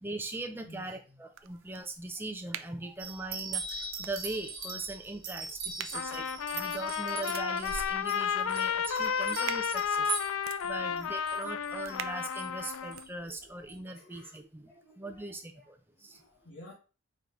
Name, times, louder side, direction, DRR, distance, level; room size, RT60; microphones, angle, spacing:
voice 1, 0.0-10.3 10.6-16.2, right 2 dB, 10° right, 6 dB, 0.5 m, -41 dB
voice 2, 0.6-1.2 5.6-6.1 6.6-6.8 8.9-9.6 10.2-10.5 10.8-11.7 13.4-14.4 14.8-15.7 16.1-16.7, left 2 dB, 65° left, -6 dB, 1.7 m, -56 dB
sound 1, 1.3-13.1, right 8 dB, 80° right, 0.4 m, -47 dB
sound 2, 3.0-10.7 11.0-12.0 12.3-13.0 13.3-13.4 13.7-13.8, right 4 dB, 45° right, 1.3 m, -40 dB
Trumpet, 5.9-13.1, left 7 dB, 85° left, 0.3 m, -32 dB
4.8 x 4.3 x 2.6 m, 0.33 s
head